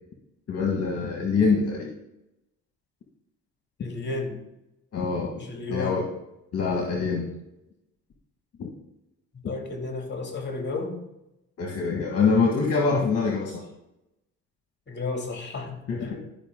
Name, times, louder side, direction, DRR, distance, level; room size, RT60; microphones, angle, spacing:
voice 1, 0.5-1.9 4.9-5.3 5.7-6.0 6.5-7.3 8.6-8.7 11.6-13.6 15.9-16.2, left 4 dB, 55° left, 0 dB, 1.7 m, -24 dB
voice 2, 3.8-4.4 5.4-6.0 9.5-11.0 14.9-16.2, left 3 dB, 35° left, 3 dB, 2.5 m, -32 dB
12.0 x 5.4 x 3.7 m, 0.86 s
cardioid pair, 90°, 30 cm